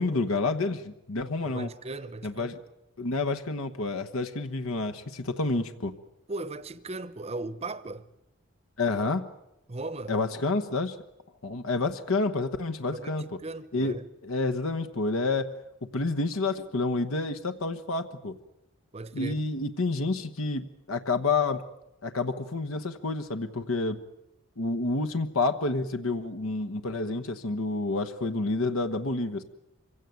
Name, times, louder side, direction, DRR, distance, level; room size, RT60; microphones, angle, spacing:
voice 1, 0.0-1.7 2.2-2.5 3.0-5.9 8.8-9.3 10.1-11.0 11.4-13.2 13.7-15.5 15.9-18.4 19.1-21.6 22.0-24.0 24.6-29.4, left 3 dB, 85° left, 1.2 m, -29 dB
voice 2, 1.4-2.6 6.3-8.1 9.7-10.1 12.9-14.0 18.9-19.4, right 2 dB, 30° right, 0.8 m, -37 dB
25.0 x 16.5 x 9.2 m
head